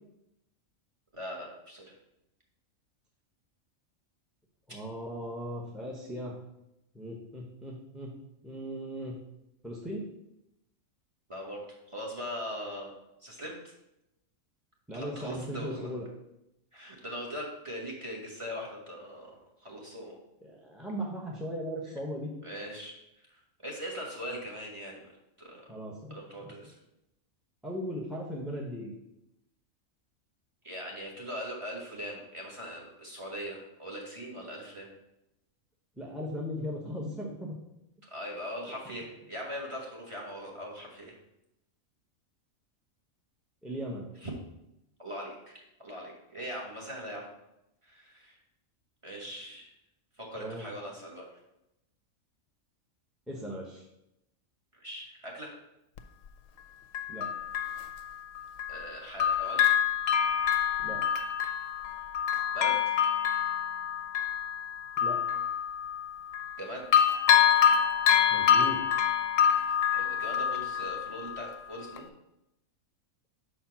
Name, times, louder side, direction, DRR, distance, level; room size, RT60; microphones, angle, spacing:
voice 1, 1.1-1.9 11.3-11.6 11.9-12.9 13.2-13.7 14.9-15.9 16.7-20.2 21.9-22.0 22.4-25.1 25.4-25.7 26.1-26.8 30.6-34.9 38.1-41.2 44.2-44.3 45.0-47.3 47.8-48.4 49.0-49.7 50.2-51.4 54.8-55.5 58.7-59.6 62.5-62.9 66.6-67.0 69.8-72.1, equal, 25° right, -2 dB, 1.5 m, -40 dB
voice 2, 4.7-6.3 6.9-8.1 8.4-9.2 9.6-10.1 14.9-16.1 20.4-22.3 25.7-26.7 27.6-28.9 36.0-37.5 43.6-44.1 50.3-50.7 53.3-53.8 57.1-57.3 60.8-61.0 65.0-65.2 68.3-68.9, equal, ahead, -3 dB, 0.8 m, -38 dB
Bell, 56.0-56.1 56.9-58.9 59.2-66.6 66.9-71.5 72.0-72.1, left 9 dB, 75° left, 0.9 m, -26 dB
5.5 x 4.4 x 5.8 m, 0.87 s
omnidirectional pair, 1.4 m